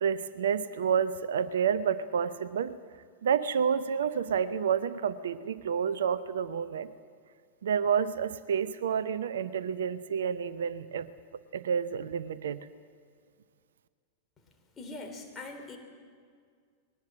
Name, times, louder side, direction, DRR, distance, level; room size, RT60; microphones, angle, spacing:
voice 1, 0.0-2.8 3.2-6.9 7.6-11.1 11.5-12.6, right 7 dB, 65° right, 15 dB, 0.7 m, -29 dB
voice 2, 14.8-15.8, left 2 dB, 20° left, 3 dB, 3.7 m, -42 dB
20.5 x 19.0 x 7.5 m, 2.1 s
figure-of-eight pair, 90°, 0 cm